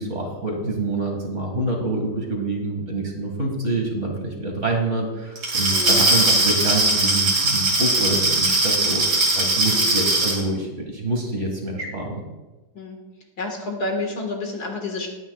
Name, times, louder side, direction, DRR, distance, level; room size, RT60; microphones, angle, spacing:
voice 1, 0.0-9.0 9.3-12.2, right 2 dB, 40° right, 1 dB, 2.3 m, -26 dB
Glass, 5.4-10.4, right 2 dB, 65° right, 2.8 m, -20 dB
voice 2, 5.7-6.0 9.7-10.0 12.7-13.0 13.4-15.1, left 2 dB, 60° left, 2 dB, 2.2 m, -29 dB
19.5 x 9.3 x 2.4 m, 1.1 s
omnidirectional pair, 1.9 m